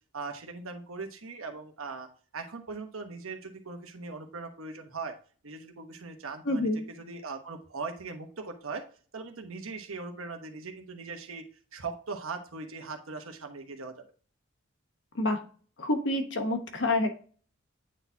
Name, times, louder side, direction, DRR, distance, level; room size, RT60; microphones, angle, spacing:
voice 1, 0.1-2.1 2.3-5.1 5.4-8.8 9.1-11.5 11.7-13.9, right 4 dB, 85° right, 5 dB, 1.1 m, -40 dB
voice 2, 6.5-6.8 15.1-15.4 15.8-17.2, left 2 dB, 60° left, 5 dB, 1.1 m, -28 dB
8.7 x 4.1 x 2.8 m, 0.42 s
head